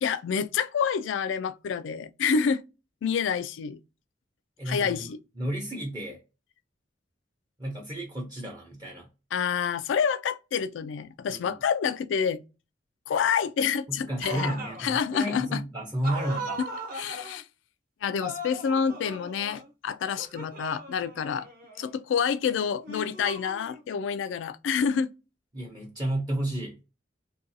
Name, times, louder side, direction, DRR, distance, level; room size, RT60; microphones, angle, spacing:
voice 1, 0.0-2.6 3.0-3.8 4.7-5.2 9.3-12.4 13.1-15.6 16.6-16.7 16.9-17.4 18.0-21.5 21.8-25.1, left 6 dB, 90° left, 0.3 m, -28 dB
voice 2, 4.6-5.1 5.4-6.2 7.6-9.1 11.3-11.5 13.9-16.6 25.5-26.8, right 1 dB, 25° right, 0.6 m, -32 dB
sound 1, 14.2-14.8 16.0-17.4 18.2-19.7 20.2-21.9 22.8-23.9, right 1 dB, 50° right, 1.0 m, -38 dB
2.5 x 2.2 x 2.6 m
head